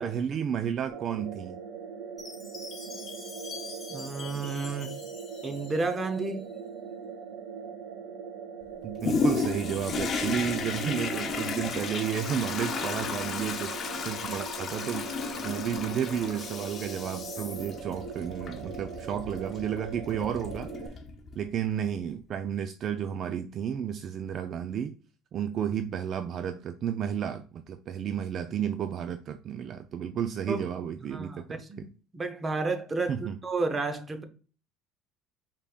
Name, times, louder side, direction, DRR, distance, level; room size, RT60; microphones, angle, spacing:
voice 1, 0.0-1.6 8.8-15.1 15.4-20.7 21.4-24.9 25.3-31.9 33.1-33.4, right 8 dB, 45° right, 0.4 m, -32 dB
sound 1, 0.9-20.9, right 6 dB, 60° right, 1.7 m, -41 dB
Chime, 2.2-6.3, left 4 dB, 25° left, 1.5 m, -45 dB
voice 2, 3.9-4.9 5.4-6.5 30.5-30.6 31.1-34.2, right 3 dB, 20° right, 0.7 m, -32 dB
Toilet flush, 9.0-21.4 22.0-22.1, left 5 dB, 40° left, 0.7 m, -34 dB
5.1 x 3.6 x 2.4 m
cardioid pair, 115°, 0 cm